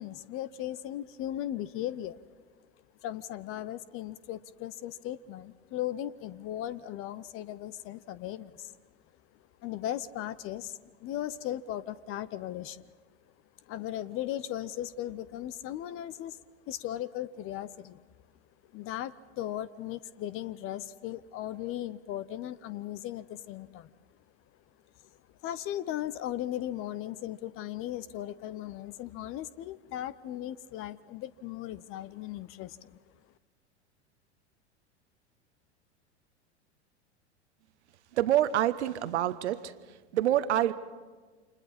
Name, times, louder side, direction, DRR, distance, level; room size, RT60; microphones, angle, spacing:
voice 1, 0.0-2.2 3.0-8.7 9.6-12.9 13.7-18.0 18.7-23.9 25.4-33.0, left 12 dB, 40° left, 18 dB, 0.7 m, -37 dB
voice 2, 38.1-39.7 40.1-40.7, right 12 dB, 70° right, 13 dB, 1.1 m, -26 dB
29.5 x 26.5 x 4.3 m, 1.4 s
hypercardioid pair, 90°, 35 cm